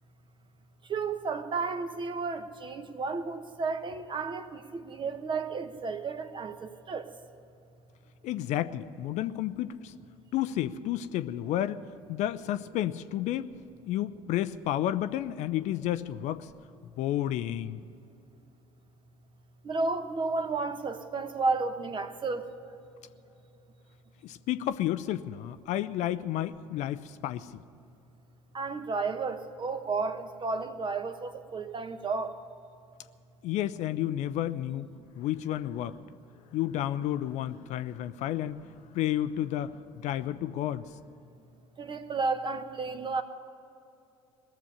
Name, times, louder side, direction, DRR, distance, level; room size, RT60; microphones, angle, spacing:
voice 1, 0.9-7.0 19.6-22.4 28.5-32.3 41.8-43.2, right 4 dB, 30° right, 1.1 m, -32 dB
voice 2, 8.2-9.9 10.3-13.5 13.9-16.5 17.0-17.8 24.2-27.5 33.4-34.9 35.2-36.0 36.5-38.6 38.9-39.7 40.0-40.9, left 12 dB, 50° left, 0.5 m, -31 dB
18.5 x 7.0 x 9.8 m
hypercardioid pair, 65°, 15 cm